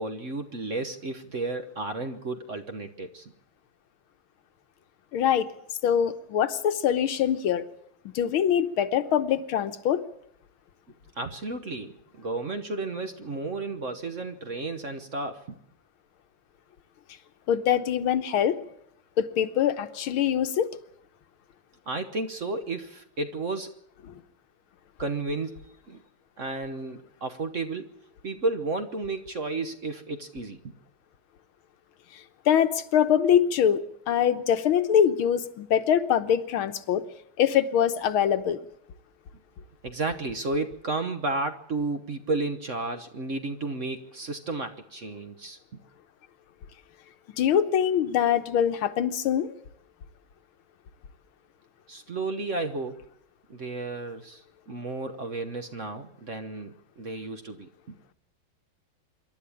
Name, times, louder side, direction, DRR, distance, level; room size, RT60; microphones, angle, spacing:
voice 1, 0.0-3.3 11.2-15.6 21.9-23.7 25.0-26.0 26.4-28.0 28.2-30.7 39.8-45.8 51.9-53.0 53.5-57.9, right 3 dB, 45° right, 8 dB, 1.2 m, -33 dB
voice 2, 5.1-5.5 5.8-7.6 8.1-10.0 17.5-18.6 19.2-20.7 24.1-24.2 32.5-37.0 37.4-38.6 47.4-49.5, left 9 dB, 80° left, 9 dB, 1.8 m, -23 dB
26.0 x 12.0 x 8.5 m, 0.71 s
omnidirectional pair, 2.2 m